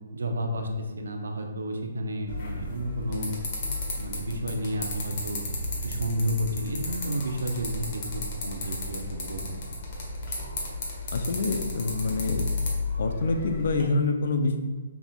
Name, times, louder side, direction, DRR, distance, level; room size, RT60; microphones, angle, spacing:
voice 1, 0.1-3.3 4.0-5.4 5.8-9.6, equal, 85° right, 4 dB, 0.7 m, -31 dB
sound 1, 2.3-13.8, left 2 dB, 45° left, 1.2 m, -33 dB
voice 2, 11.1-12.5 13.0-14.6, left 3 dB, 60° left, 6 dB, 0.5 m, -26 dB
5.7 x 3.6 x 2.4 m, 1.4 s
hypercardioid pair, 150°, 0 cm